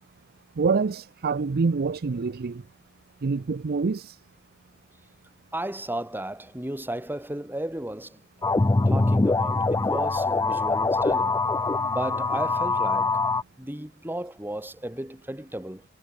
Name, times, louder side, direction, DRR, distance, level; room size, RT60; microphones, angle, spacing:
voice 1, 0.6-2.6 3.2-4.2 11.8-11.9, right 4 dB, 45° right, 0.5 m, -26 dB
voice 2, 5.5-8.2 8.9-11.4 11.9-13.2 13.6-15.8, right 1 dB, 10° right, 4.0 m, -34 dB
sound 1, 8.4-13.4, left 3 dB, 15° left, 0.4 m, -23 dB
head